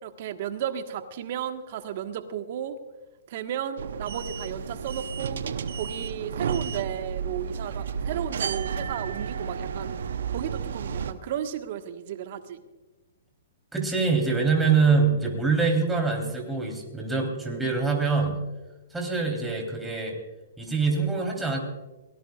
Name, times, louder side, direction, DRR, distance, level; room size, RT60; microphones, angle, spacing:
voice 1, 0.0-2.7 3.3-5.4 5.7-10.0 10.3-12.6, right 9 dB, 55° right, 8 dB, 1.4 m, -34 dB
sound 1, 3.8-11.1, right 6 dB, 70° right, 0.8 m, -32 dB
voice 2, 13.7-18.4 18.9-20.1 20.6-21.6, right 4 dB, 5° right, 1 dB, 3.5 m, -24 dB
23.0 x 18.0 x 2.4 m, 1.1 s
hypercardioid pair, 120°, 0 cm